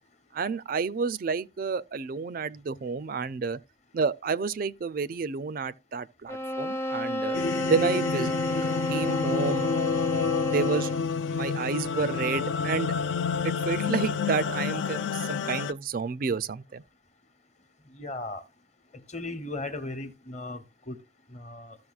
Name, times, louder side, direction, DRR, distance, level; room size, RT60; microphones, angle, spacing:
voice 1, 0.3-3.6 3.9-7.4 7.7-8.3 8.9-9.7 10.1-10.9 11.3-13.1 13.4-16.8, right 5 dB, 45° right, 0.3 m, -30 dB
sound 1, 6.3-11.2, left 1 dB, 15° left, 0.6 m, -31 dB
sound 2, 7.3-15.7, left 6 dB, 70° left, 0.4 m, -29 dB
voice 2, 17.9-18.4 19.1-20.9 21.3-21.8, left 2 dB, 35° left, 1.0 m, -37 dB
14.0 x 6.3 x 2.3 m
head